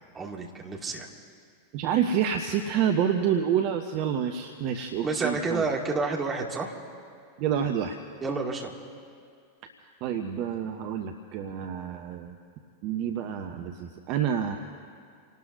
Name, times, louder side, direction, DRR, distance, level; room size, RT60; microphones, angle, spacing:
voice 1, 0.1-1.1 4.8-6.8 8.2-8.7, right 3 dB, 20° right, -1 dB, 2.3 m, -30 dB
voice 2, 1.7-5.6 7.4-8.0 9.6-9.7 10.0-12.4 12.8-14.6, right 8 dB, 45° right, 5 dB, 0.9 m, -28 dB
29.0 x 18.5 x 2.7 m, 2.3 s
figure-of-eight pair, 90°, 0 cm